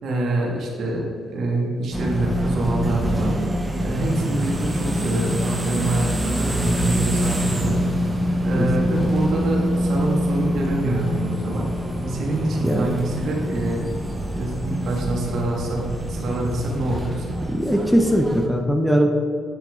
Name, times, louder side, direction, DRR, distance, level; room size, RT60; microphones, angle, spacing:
voice 1, 0.0-3.3 3.8-7.8 8.4-11.7 12.0-13.8 14.4-15.8 16.1-17.4, right 2 dB, 70° right, -2 dB, 2.3 m, -26 dB
sound 1, 1.9-18.5, equal, 15° right, 1.3 m, -25 dB
voice 2, 17.5-19.1, equal, ahead, 3 dB, 1.0 m, -20 dB
9.6 x 7.4 x 3.9 m, 2.4 s
cardioid pair, 90°, 0 cm